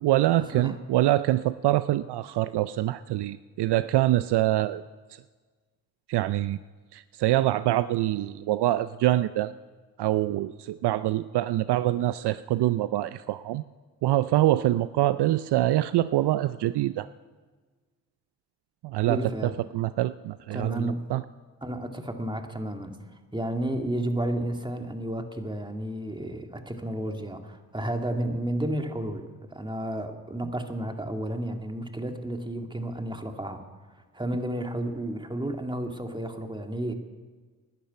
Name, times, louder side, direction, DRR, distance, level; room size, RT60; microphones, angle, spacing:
voice 1, 0.0-4.8 5.1-5.2 6.1-6.6 6.9-9.5 10.0-13.6 14.0-17.1 18.8-21.2, right 15 dB, 65° right, 15 dB, 0.5 m, -25 dB
voice 2, 19.1-19.5 20.5-21.0 21.6-23.0 23.3-33.6 34.1-36.9, right 1 dB, 10° right, 4 dB, 2.0 m, -32 dB
12.5 x 10.0 x 9.4 m, 1.4 s
supercardioid pair, 45°, 44 cm